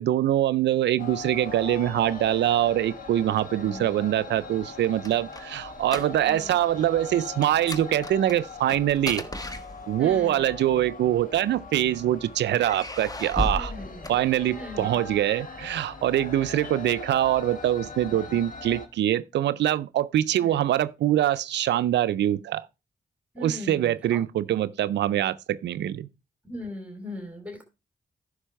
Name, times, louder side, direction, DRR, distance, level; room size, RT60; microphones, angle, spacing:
voice 1, 0.0-9.3 9.9-13.7 14.1-22.7 23.4-26.1, right 12 dB, 85° right, 0.5 m, -24 dB
sound 1, 1.0-18.9, left 4 dB, 50° left, 1.9 m, -41 dB
sound 2, 4.6-6.5 6.8-7.0 7.4-10.2 11.1-11.9 12.5-14.8, left 1 dB, 20° left, 1.2 m, -35 dB
voice 2, 6.2-6.5 10.0-10.5 13.5-14.2 14.5-15.0 18.1-18.4 20.3-20.6 23.3-24.2 26.4-27.6, left 1 dB, 5° right, 2.8 m, -39 dB
10.0 x 5.9 x 4.5 m
supercardioid pair, 45°, 18 cm